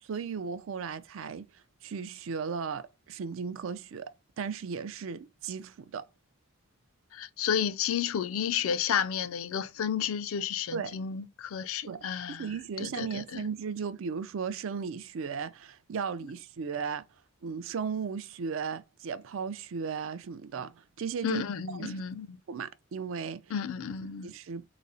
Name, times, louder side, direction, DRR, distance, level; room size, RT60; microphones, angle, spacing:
voice 1, 0.0-1.5 1.8-6.1 10.7-11.0 11.9-12.0 12.4-17.1 17.4-21.4 21.8-22.0 22.5-23.4 24.2-24.6, right 6 dB, 65° right, 0.4 m, -36 dB
voice 2, 7.1-13.5 21.2-22.4 23.5-24.3, left 8 dB, 75° left, 0.4 m, -32 dB
4.0 x 2.0 x 3.8 m
head